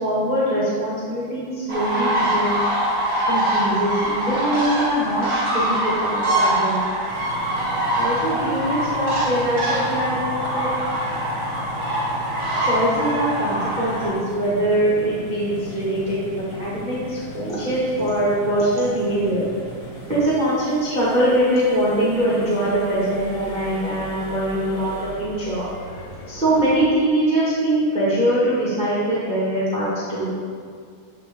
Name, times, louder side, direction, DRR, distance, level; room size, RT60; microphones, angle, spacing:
voice 1, 0.0-2.6 3.3-5.3 5.5-6.8 8.0-10.2 10.5-10.7 12.6-19.4 20.1-26.0 26.3-30.3, right 1 dB, 70° right, -10 dB, 0.4 m, -22 dB
sound 1, 1.7-14.1, right 1 dB, 35° right, 1.7 m, -23 dB
sound 2, 7.1-26.8, left 2 dB, 65° left, 1.3 m, -37 dB
11.0 x 5.0 x 3.9 m, 2.2 s
omnidirectional pair, 4.5 m